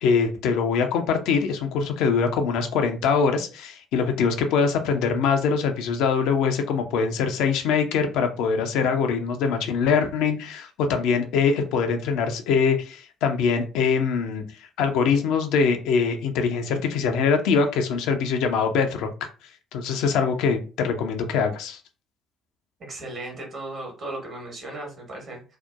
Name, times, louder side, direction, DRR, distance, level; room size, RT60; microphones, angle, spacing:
voice 1, 0.0-14.4 14.8-19.3 19.7-21.8, left 5 dB, 65° left, 5 dB, 0.4 m, -23 dB
voice 2, 22.8-25.4, right 2 dB, 50° right, 0 dB, 1.1 m, -36 dB
2.6 x 2.1 x 2.3 m, 0.34 s
figure-of-eight pair, 50°, 0 cm